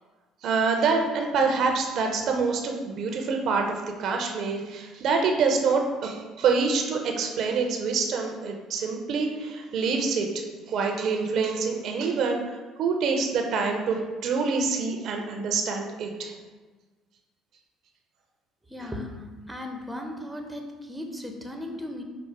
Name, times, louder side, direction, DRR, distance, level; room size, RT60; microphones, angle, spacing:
voice 1, 0.4-16.4, right 4 dB, 65° right, 3 dB, 0.5 m, -26 dB
voice 2, 18.7-19.1 19.5-22.0, left 1 dB, 5° right, 3 dB, 0.6 m, -36 dB
4.7 x 2.0 x 4.5 m, 1.3 s
hypercardioid pair, 65°, 0 cm